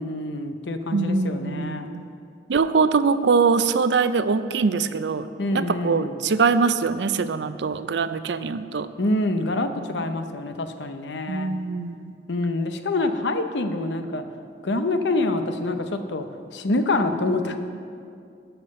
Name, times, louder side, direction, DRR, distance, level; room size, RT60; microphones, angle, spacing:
voice 1, 0.0-1.9 5.4-6.2 9.0-11.5 12.3-14.2 14.6-16.3 16.5-17.6, left 2 dB, 75° left, 8 dB, 0.7 m, -26 dB
voice 2, 0.9-2.1 2.5-5.3 5.5-8.9 11.3-12.0, right 5 dB, 70° right, 12 dB, 0.5 m, -23 dB
13.0 x 5.7 x 6.4 m, 2.4 s
head